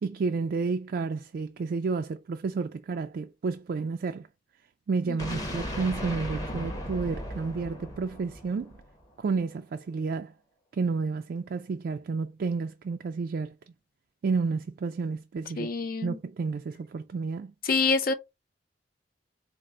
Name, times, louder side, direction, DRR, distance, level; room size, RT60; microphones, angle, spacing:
voice 1, 0.0-4.3 4.9-8.8 9.2-10.3 10.7-13.5 14.2-15.7 16.0-17.5, right 4 dB, 55° right, 0.3 m, -31 dB
sound 1, 5.2-9.1, equal, 20° left, 1.0 m, -36 dB
voice 2, 15.6-16.2 17.6-18.1, left 4 dB, 50° left, 0.5 m, -26 dB
4.3 x 2.0 x 3.6 m
head